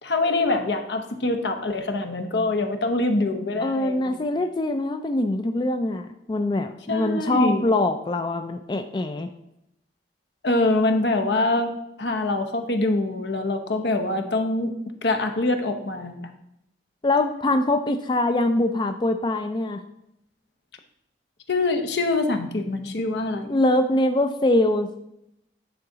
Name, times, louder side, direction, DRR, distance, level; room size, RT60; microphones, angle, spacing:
voice 1, 0.0-4.3 6.9-7.7 10.4-11.7 12.0-14.7 15.0-16.3 21.5-23.6, left 2 dB, 75° left, 7 dB, 0.9 m, -24 dB
voice 2, 3.6-9.3 17.0-19.8 23.5-24.9, left 2 dB, 25° left, 7 dB, 0.3 m, -23 dB
9.6 x 4.6 x 3.9 m, 0.82 s
head